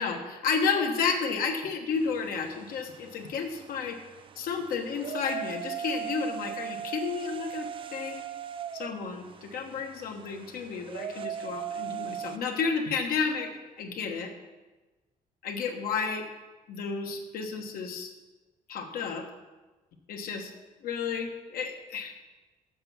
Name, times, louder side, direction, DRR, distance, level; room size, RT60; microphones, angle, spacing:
voice 1, 0.0-4.0 4.4-8.2 8.7-14.3 15.4-16.3 16.7-18.1 18.7-19.3 20.1-20.5 20.8-22.1, left 5 dB, 85° left, 4 dB, 1.3 m, -32 dB
sound 1, 1.9-12.4, right 9 dB, 35° right, 0.4 m, -39 dB
7.7 x 7.0 x 6.1 m, 1.2 s
cardioid pair, 155°, 15 cm